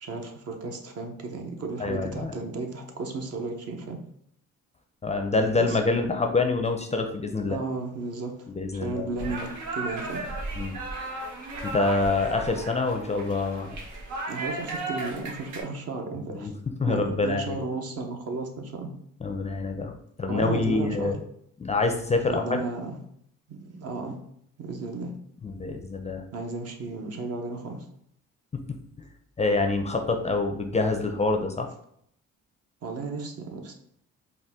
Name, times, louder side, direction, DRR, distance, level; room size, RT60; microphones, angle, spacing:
voice 1, 0.0-4.0 5.6-5.8 7.5-10.2 14.3-16.5 16.9-18.9 20.3-21.2 22.3-23.0 23.5-24.2 24.6-25.2 26.3-27.9 32.8-33.7, right 3 dB, 55° right, 4 dB, 0.8 m, -34 dB
voice 2, 1.8-2.3 5.0-7.6 8.5-9.3 10.6-10.8 11.6-13.8 16.3-16.5 16.8-17.6 19.2-19.9 20.2-21.2 21.6-22.6 25.4-26.2 29.4-31.7, left 3 dB, 25° left, 4 dB, 0.4 m, -26 dB
sound 1, 9.2-15.6, right 2 dB, 85° right, 0.9 m, -35 dB
4.1 x 2.2 x 3.5 m, 0.70 s
cardioid pair, 90°, 30 cm